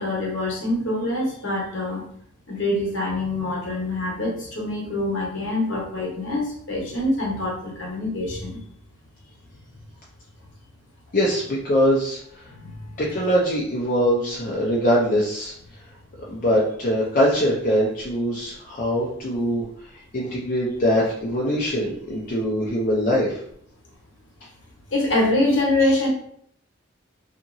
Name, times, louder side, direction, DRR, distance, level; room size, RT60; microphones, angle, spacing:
voice 1, 0.0-2.0 2.5-8.6 12.6-12.9 24.9-26.1, left 2 dB, 70° left, -3 dB, 1.0 m, -25 dB
voice 2, 11.1-12.2 13.0-15.5 16.3-19.6 20.1-23.4, equal, 45° left, -5 dB, 0.5 m, -22 dB
2.8 x 2.5 x 2.6 m, 0.66 s
head